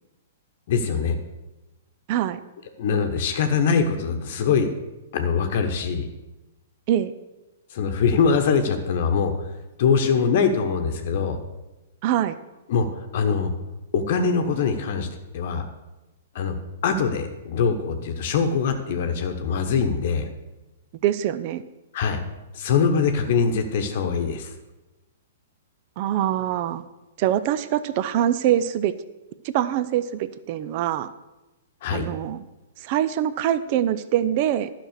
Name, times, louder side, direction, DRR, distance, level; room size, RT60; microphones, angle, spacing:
voice 1, 0.7-1.2 2.8-4.7 5.1-6.1 7.7-9.5 9.8-11.4 12.7-13.5 13.9-15.1 15.3-15.6 16.3-16.6 16.8-20.3 21.9-22.2 22.5-24.5 31.8-32.0, left 5 dB, 50° left, 6 dB, 1.0 m, -23 dB
voice 2, 2.1-2.4 6.9-7.1 12.0-12.4 21.0-21.6 26.0-26.8 27.2-28.9 29.4-31.1 31.9-32.4 32.8-34.7, right 11 dB, 40° right, 14 dB, 0.5 m, -24 dB
11.5 x 6.0 x 6.6 m, 1.1 s
figure-of-eight pair, 115°, 0 cm